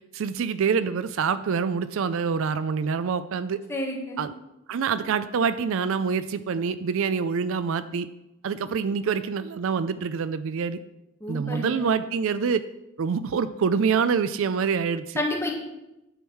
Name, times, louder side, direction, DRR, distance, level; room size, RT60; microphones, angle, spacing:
voice 1, 0.1-3.6 4.2-4.3 4.7-8.1 8.4-10.8 11.3-12.6 13.0-15.2, right 6 dB, 65° right, 13 dB, 0.4 m, -26 dB
voice 2, 3.7-4.2 11.2-11.9 15.2-15.5, left 1 dB, 10° left, -2 dB, 1.9 m, -29 dB
10.0 x 4.6 x 6.3 m, 0.93 s
head